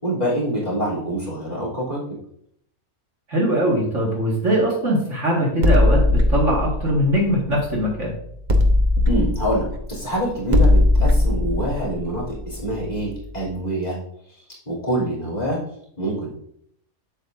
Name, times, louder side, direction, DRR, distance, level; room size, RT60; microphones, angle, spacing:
voice 1, 0.0-2.0 9.0-14.0 14.3-15.6 16.0-16.3, right 1 dB, 30° left, -5 dB, 3.2 m, -25 dB
voice 2, 3.3-6.0 6.3-8.1, equal, 55° right, -3 dB, 2.3 m, -21 dB
sound 1, 5.6-8.0 8.5-13.1, left 2 dB, 35° right, 0.9 m, -19 dB
8.0 x 7.8 x 2.6 m, 0.67 s
omnidirectional pair, 1.5 m